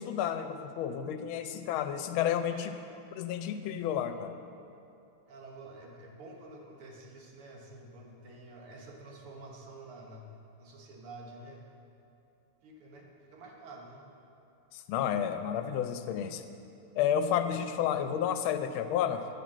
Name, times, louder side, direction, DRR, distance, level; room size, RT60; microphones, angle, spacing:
voice 1, 0.0-2.7 3.2-4.4 14.7-16.4 17.0-19.3, left 9 dB, 75° left, 8 dB, 1.3 m, -31 dB
voice 2, 5.3-11.6 12.6-14.0 17.3-17.4, right 2 dB, 80° right, 0 dB, 2.1 m, -49 dB
8.3 x 6.1 x 7.3 m, 2.7 s
omnidirectional pair, 2.4 m